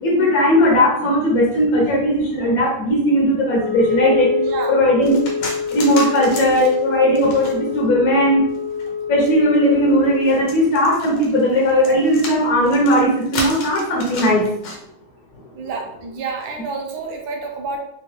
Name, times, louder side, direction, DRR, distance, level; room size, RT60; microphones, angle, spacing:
voice 1, 0.0-4.3 4.7-5.1 5.7-8.4 9.1-14.4, equal, 60° left, -3 dB, 1.0 m, -17 dB
Wind instrument woodwind instrument, 3.5-10.6, left 6 dB, 40° left, 0.7 m, -26 dB
voice 2, 4.4-4.8 15.5-17.8, right 4 dB, 65° right, 2 dB, 1.1 m, -29 dB
sound 1, 5.0-7.9 8.4-14.8, left 3 dB, 75° left, 1.8 m, -32 dB
4.6 x 2.2 x 3.2 m, 0.74 s
omnidirectional pair, 2.4 m